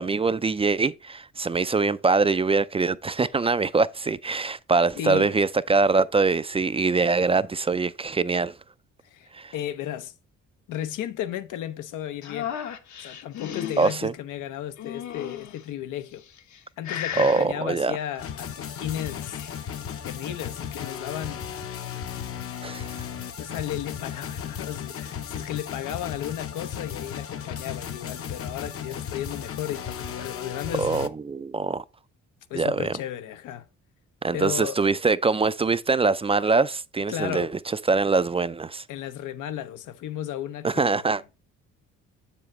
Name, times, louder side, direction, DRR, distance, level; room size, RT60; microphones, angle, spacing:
voice 1, 0.0-8.5 9.3-9.5 13.8-14.1 17.2-18.0 22.6-23.1 30.8-31.8 32.5-33.0 34.2-38.8 40.6-41.2, right 4 dB, 20° right, 0.3 m, -23 dB
voice 2, 5.0-5.3 9.0-10.1 10.7-12.5 13.0-16.2 16.8-19.4 20.0-21.5 23.4-30.9 32.5-33.6 34.3-34.8 37.1-37.5 38.9-41.0, left 11 dB, 90° left, 0.9 m, -34 dB
sound 1, 12.2-14.0 14.8-15.6 16.3-16.6 16.8-17.5 18.8-19.5, left 9 dB, 70° left, 1.1 m, -35 dB
sound 2, 18.2-31.1, left 8 dB, 50° left, 0.8 m, -35 dB
7.6 x 7.1 x 3.1 m
cardioid pair, 90°, 30 cm